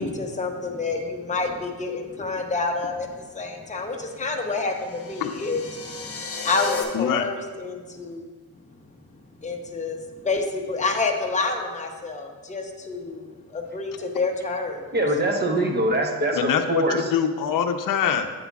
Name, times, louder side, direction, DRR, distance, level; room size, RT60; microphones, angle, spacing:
voice 1, 0.0-6.2 6.4-8.3 9.4-14.9, left 3 dB, 20° left, 2 dB, 0.8 m, -28 dB
sound 1, 4.3-6.8, left 5 dB, 35° left, 1.3 m, -34 dB
voice 2, 6.9-7.3 16.3-18.3, left 7 dB, 60° left, 6 dB, 0.7 m, -24 dB
voice 3, 14.9-17.1, right 1 dB, 25° right, 3 dB, 1.0 m, -23 dB
9.4 x 7.9 x 2.4 m, 1.4 s
cardioid pair, 125°, 37 cm